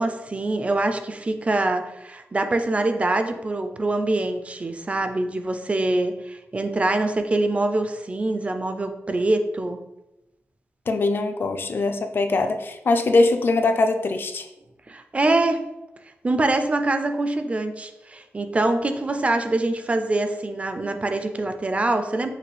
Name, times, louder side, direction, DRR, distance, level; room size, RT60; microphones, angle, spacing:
voice 1, 0.0-9.8 14.9-15.7 16.2-22.3, right 2 dB, 25° right, 7 dB, 0.3 m, -24 dB
voice 2, 10.9-14.5, left 3 dB, 45° left, 7 dB, 0.3 m, -22 dB
6.5 x 2.4 x 3.2 m, 0.93 s
wide cardioid pair, 165°, 5 cm